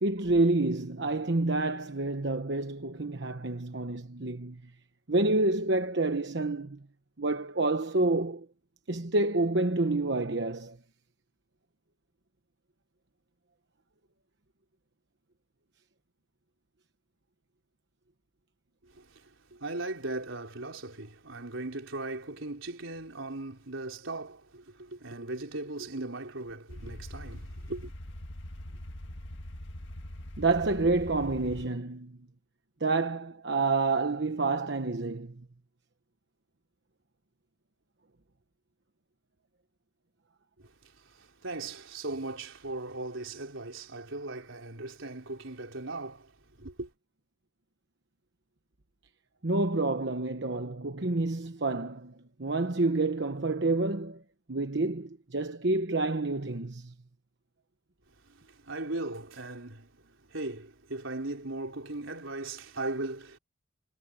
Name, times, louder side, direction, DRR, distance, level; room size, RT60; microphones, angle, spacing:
voice 1, 0.0-4.6 5.1-6.8 7.2-8.5 8.9-10.8 30.4-32.2 32.8-35.4 49.4-52.1 52.4-54.2 54.5-56.9, right 2 dB, 60° right, 1.1 m, -28 dB
voice 2, 18.9-27.9 40.6-46.9 58.2-63.4, right 2 dB, 85° right, 3.9 m, -38 dB
sound 1, 26.7-31.7, left 1 dB, 65° left, 1.8 m, -42 dB
head